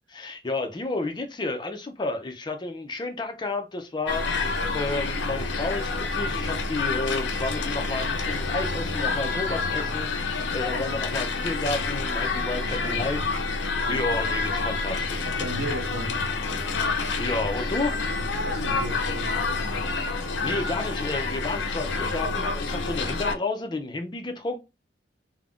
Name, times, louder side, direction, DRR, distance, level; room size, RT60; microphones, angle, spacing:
voice 1, 0.1-13.3 13.9-15.3 17.2-18.0 20.4-24.6, left 2 dB, 25° left, 0.4 m, -31 dB
sound 1, 4.1-23.4, left 3 dB, 85° left, 0.5 m, -28 dB
voice 2, 12.6-13.1 15.2-16.3 18.4-20.4 21.4-21.5, equal, 65° right, 0.9 m, -36 dB
2.4 x 2.0 x 3.4 m
head